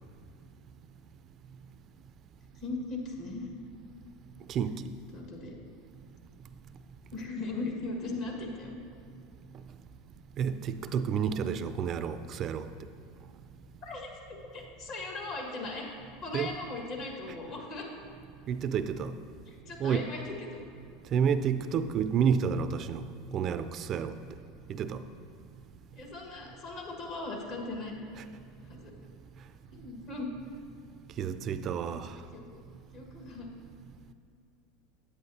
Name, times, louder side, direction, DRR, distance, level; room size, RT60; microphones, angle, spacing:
voice 1, 2.6-3.5 5.1-5.5 7.1-8.7 13.8-15.9 16.2-17.9 19.5-20.6 25.9-28.0 28.7-28.9 29.7-30.3 31.9-32.0 32.3-32.5 32.9-33.5, left 3 dB, 55° left, 0 dB, 1.7 m, -38 dB
voice 2, 4.5-4.9 10.4-12.7 16.3-16.5 18.5-19.1 19.8-20.1 21.1-23.0 23.3-24.2 24.7-25.0 28.2-28.3 31.2-32.1, right 7 dB, 40° right, 11 dB, 0.3 m, -30 dB
9.6 x 8.5 x 2.8 m, 2.4 s
hypercardioid pair, 100°, 0 cm